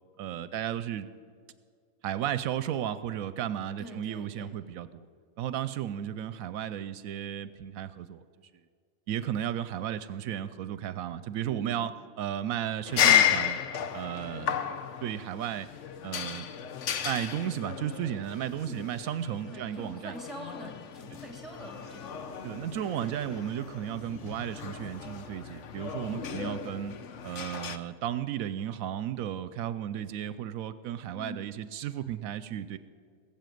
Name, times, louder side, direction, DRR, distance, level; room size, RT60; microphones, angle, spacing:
voice 1, 0.2-1.1 2.0-5.1 5.4-8.2 9.1-11.9 12.2-13.6 13.9-14.7 15.0-15.7 16.0-16.5 17.0-20.1 22.4-26.9 27.2-32.8, right 10 dB, 80° right, 14 dB, 1.0 m, -34 dB
voice 2, 3.8-4.6 11.4-11.9 18.6-18.8 19.5-22.3 22.8-23.4 26.1-26.7 31.1-31.6, equal, ahead, 2 dB, 2.6 m, -45 dB
sound 1, 12.9-27.8, left 9 dB, 65° left, 1.1 m, -32 dB
sound 2, 21.1-26.3, equal, 35° left, 4.5 m, -52 dB
20.5 x 7.3 x 9.2 m, 2.1 s
omnidirectional pair, 1.5 m